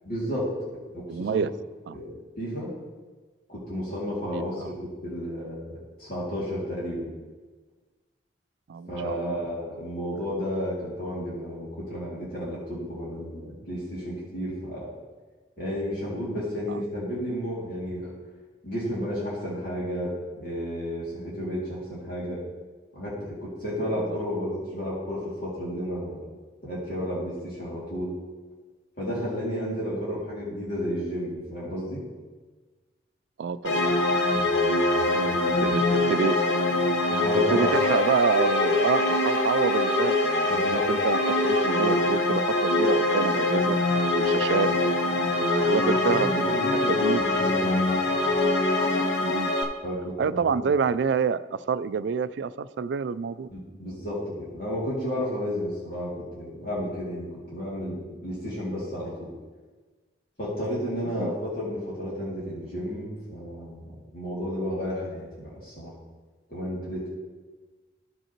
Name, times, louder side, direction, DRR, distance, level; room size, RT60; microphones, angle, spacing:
voice 1, 0.0-1.4 1.9-2.7 3.5-5.7 6.0-7.1 8.9-14.9 15.6-18.1 18.6-22.4 22.9-26.2 26.6-28.2 29.0-32.0 34.3-35.8 37.1-37.8 40.4-40.9 44.2-44.3 45.6-47.8 48.1-48.3 49.8-50.7 53.5-59.3 60.4-65.9 66.5-67.1, equal, 50° left, -8 dB, 2.4 m, -32 dB
voice 2, 1.1-1.5 1.9-2.0 4.3-4.7 8.7-9.4 16.7-16.8 24.1-24.2 33.4-33.8 35.6-36.4 37.3-41.2 41.4-44.7 45.4-46.6 46.9-47.2 49.2-49.5 50.2-53.5 61.2-61.3, right 6 dB, 70° right, 15 dB, 0.3 m, -27 dB
sound 1, 33.6-49.6, left 2 dB, 85° left, 1.0 m, -23 dB
14.5 x 5.4 x 2.9 m, 1.3 s
head